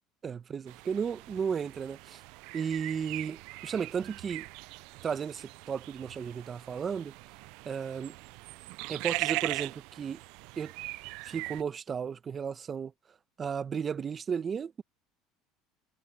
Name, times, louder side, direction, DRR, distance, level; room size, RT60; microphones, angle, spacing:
voice 1, 0.2-2.2 2.5-4.5 5.0-7.1 7.6-8.1 8.9-10.2 10.6-10.7 11.2-12.9 13.4-14.8, right 7 dB, 35° right, 1.2 m, -34 dB
sound 1, 0.7-11.6, right 25 dB, 70° right, 0.3 m, -40 dB
supercardioid pair, 90°, 0 cm